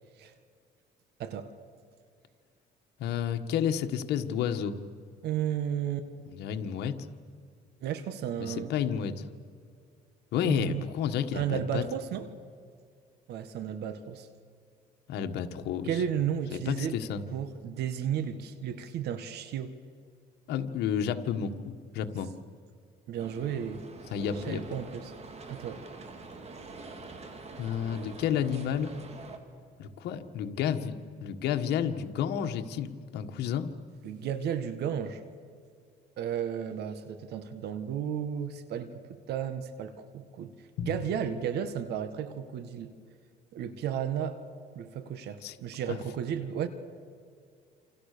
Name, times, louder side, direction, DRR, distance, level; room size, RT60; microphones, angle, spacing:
voice 1, 1.2-1.5 5.2-6.1 7.8-8.7 10.4-10.9 11.3-12.3 13.3-14.3 15.8-16.9 17.3-19.7 23.1-23.8 24.3-25.1 25.5-25.8 34.0-35.2 36.2-39.0 39.3-40.5 40.8-42.9 43.5-44.4 44.7-46.7, right 9 dB, 75° right, 10 dB, 1.7 m, -33 dB
voice 2, 3.0-4.8 6.3-7.1 8.4-9.2 10.3-11.8 15.1-16.0 16.5-17.2 20.5-22.3 24.1-24.6 27.6-28.9 29.8-32.9 33.1-33.7 40.8-41.0 45.4-45.6 45.9-46.0, left 8 dB, 80° left, 7 dB, 1.6 m, -31 dB
sound 1, 23.2-29.4, right 3 dB, 40° right, 3.2 m, -45 dB
28.5 x 28.0 x 6.8 m, 2.3 s
cardioid pair, 110°, 17 cm